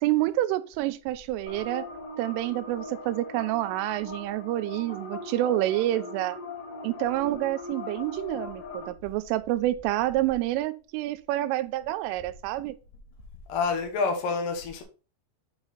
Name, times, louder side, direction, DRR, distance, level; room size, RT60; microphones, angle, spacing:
voice 1, 0.0-1.9 2.2-6.4 6.8-12.7, right 15 dB, 90° right, 3.2 m, -28 dB
sound 1, 1.5-8.9, left 3 dB, 60° left, 3.8 m, -40 dB
voice 2, 13.5-14.8, left 4 dB, 80° left, 1.9 m, -28 dB
8.9 x 4.1 x 3.9 m
omnidirectional pair, 5.6 m